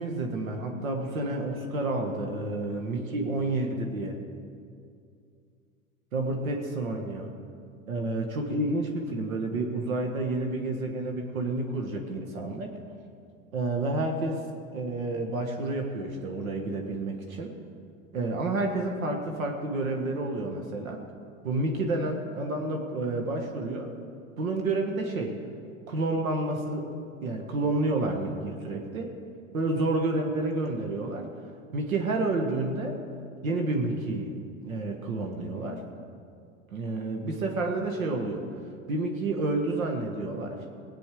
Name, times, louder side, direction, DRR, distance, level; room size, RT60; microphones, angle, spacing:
voice 1, 0.0-4.2 6.1-7.3 7.9-12.7 13.5-14.4 14.7-17.5 18.1-21.0 21.4-23.9 24.4-25.3 25.9-26.8 27.2-29.1 29.5-31.3 31.7-32.9 33.4-34.3 34.6-35.8 36.7-38.4 38.9-40.6, right 2 dB, 85° right, 2 dB, 1.6 m, -29 dB
18.0 x 8.7 x 4.9 m, 2.4 s
hypercardioid pair, 95°, 40 cm